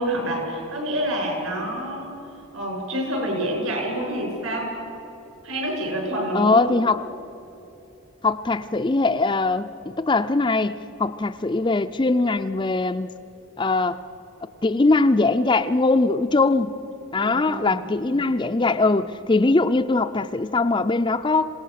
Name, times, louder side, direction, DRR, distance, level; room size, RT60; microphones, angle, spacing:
voice 1, 0.0-2.1 2.5-4.8 5.4-6.6 17.2-17.8 18.1-18.6, right 1 dB, 70° right, 0 dB, 7.1 m, -28 dB
voice 2, 6.3-7.1 8.2-10.7 11.0-13.1 13.6-14.0 14.6-16.7 17.1-21.5, left 3 dB, 20° left, 9 dB, 0.4 m, -21 dB
27.0 x 17.5 x 6.6 m, 2.9 s
head